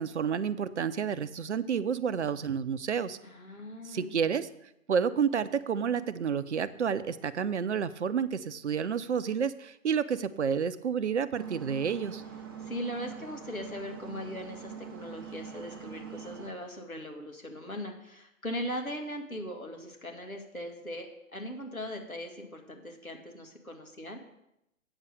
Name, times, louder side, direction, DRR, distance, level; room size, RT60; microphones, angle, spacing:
voice 1, 0.0-3.2 3.9-4.5 4.9-12.2, right 7 dB, 55° right, 14 dB, 0.7 m, -30 dB
voice 2, 3.2-4.2 12.6-24.2, equal, 85° left, 3 dB, 2.2 m, -39 dB
sound 1, 11.3-16.5, right 7 dB, 15° right, 0.5 m, -44 dB
8.8 x 7.1 x 6.5 m, 0.83 s
figure-of-eight pair, 130°, 41 cm